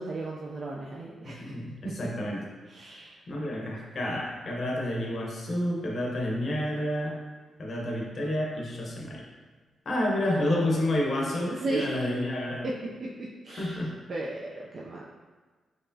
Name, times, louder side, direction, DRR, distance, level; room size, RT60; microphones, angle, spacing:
voice 1, 0.0-1.5 2.7-3.2 10.2-10.8 11.4-12.1 12.6-12.7 13.0-15.0, right 2 dB, 45° right, -3 dB, 0.4 m, -36 dB
voice 2, 1.2-2.4 3.3-7.2 7.6-9.2 9.9-12.6 13.6-13.9, left 1 dB, 45° left, -2 dB, 0.7 m, -29 dB
4.3 x 3.0 x 2.6 m, 1.4 s
cardioid pair, 115°, 0 cm